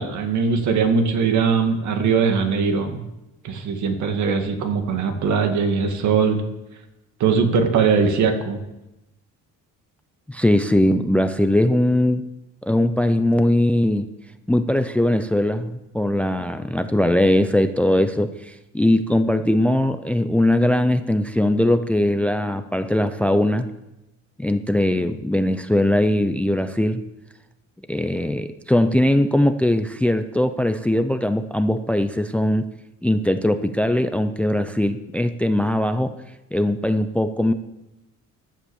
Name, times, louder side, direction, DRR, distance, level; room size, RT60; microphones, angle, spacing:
voice 1, 0.0-3.0 3.4-6.4 7.2-8.6, right 5 dB, 65° right, 6 dB, 2.1 m, -20 dB
voice 2, 10.3-12.3 12.6-14.1 14.5-23.7 24.4-27.0 27.9-32.6 33.0-36.1 36.5-37.5, left 1 dB, 5° left, 10 dB, 0.5 m, -20 dB
14.5 x 10.0 x 7.0 m, 0.95 s
cardioid pair, 155°, 32 cm